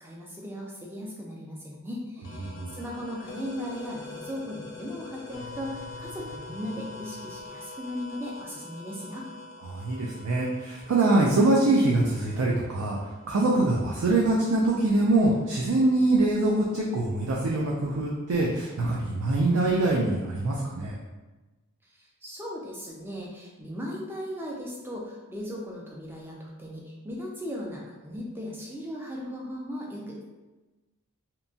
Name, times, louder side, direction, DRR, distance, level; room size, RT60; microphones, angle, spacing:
voice 1, 0.0-9.3 21.8-30.2, equal, 10° right, -2 dB, 0.4 m, -37 dB
sound 1, 2.2-13.6, left 3 dB, 55° left, 0.4 m, -44 dB
voice 2, 2.4-2.8 9.6-21.0, right 2 dB, 75° right, -3 dB, 0.4 m, -24 dB
2.8 x 2.2 x 2.6 m, 1.2 s
head